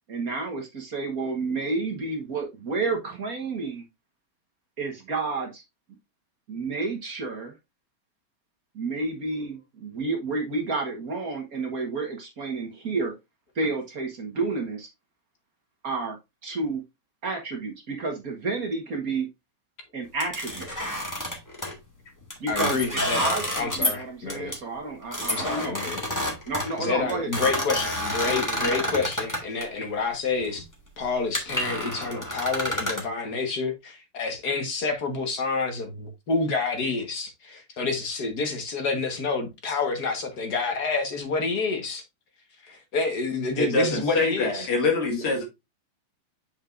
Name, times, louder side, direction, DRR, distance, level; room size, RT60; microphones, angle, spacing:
voice 1, 0.1-3.8 4.8-5.6 6.5-7.5 8.7-13.1 13.5-14.9 15.8-16.2 16.4-16.8 17.2-19.3 19.9-20.7 22.4-25.8 26.5-27.8 28.2-28.9, right 3 dB, 45° right, 1.6 m, -30 dB
sound 1, 20.2-21.7 22.3-24.0 24.3-24.6 25.1-29.6 30.4-30.6 31.0-31.1 31.3-33.1, equal, 10° left, 1.6 m, -29 dB
voice 2, 22.5-24.5 25.3-26.0 26.8-30.6 31.0-42.0 42.6-44.7 45.1-45.2, left 4 dB, 50° left, 1.8 m, -28 dB
voice 3, 43.6-45.4, left 3 dB, 75° left, 2.9 m, -25 dB
7.3 x 5.4 x 2.5 m
omnidirectional pair, 2.4 m